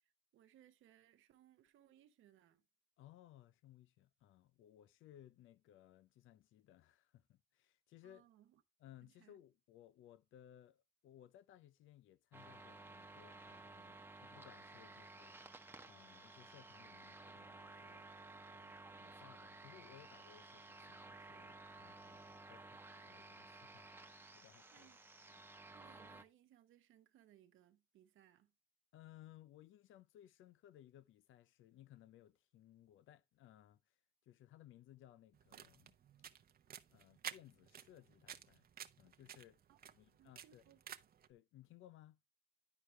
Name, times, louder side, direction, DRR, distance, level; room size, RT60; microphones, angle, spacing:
voice 1, 0.0-2.6 8.0-8.6 9.0-9.4 24.7-25.0 25.7-28.5 39.7-39.8 40.2-40.8, right 11 dB, 80° right, 1.0 m, -67 dB
voice 2, 3.0-8.3 8.8-15.4 15.9-18.1 18.5-18.7 19.0-24.9 28.9-34.0 34.2-36.0 36.9-38.7 39.0-39.6 39.9-40.6 41.3-42.2, left 12 dB, 80° left, 0.6 m, -62 dB
sound 1, 12.3-26.2, right 2 dB, 10° right, 1.0 m, -56 dB
sound 2, 35.3-41.3, right 9 dB, 50° right, 0.8 m, -53 dB
11.0 x 4.8 x 3.2 m
cardioid pair, 90°, 20 cm